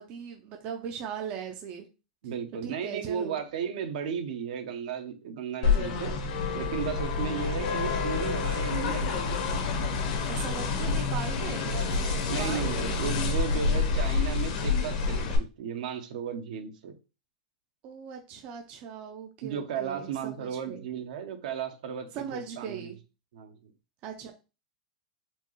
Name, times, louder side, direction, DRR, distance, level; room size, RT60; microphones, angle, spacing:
voice 1, 0.0-1.9 2.6-3.4 10.2-12.6 17.8-20.9 22.1-23.0 24.0-24.3, right 7 dB, 35° right, 3 dB, 0.5 m, -39 dB
voice 2, 2.2-6.2 6.5-9.5 12.3-16.9 19.4-22.9 23.3-23.6, right 7 dB, 65° right, 6 dB, 0.8 m, -35 dB
sound 1, 5.6-15.4, left 4 dB, 65° left, 1.0 m, -28 dB
4.3 x 2.4 x 3.1 m, 0.30 s
supercardioid pair, 155°, 4 cm